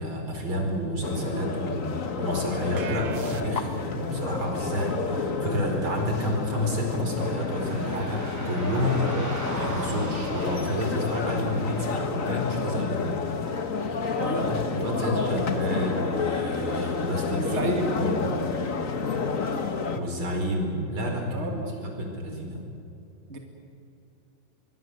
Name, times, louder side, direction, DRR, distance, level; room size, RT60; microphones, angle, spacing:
voice 1, 0.0-9.2 9.5-13.1 14.5-17.6 17.9-18.3 19.9-22.6, left 1 dB, 80° right, 2 dB, 5.7 m, -30 dB
sound 1, 1.0-20.0, left 4 dB, 40° left, 1.7 m, -30 dB
sound 2, 2.8-3.9, right 7 dB, 55° right, 1.4 m, -37 dB
sound 3, 7.1-12.3, right 1 dB, 5° right, 6.4 m, -38 dB
voice 2, 14.1-15.5 17.3-18.1 21.3-21.7 23.3-23.4, right 1 dB, 30° right, 2 dB, 2.7 m, -31 dB
25.5 x 23.0 x 8.0 m, 2.7 s
omnidirectional pair, 2.3 m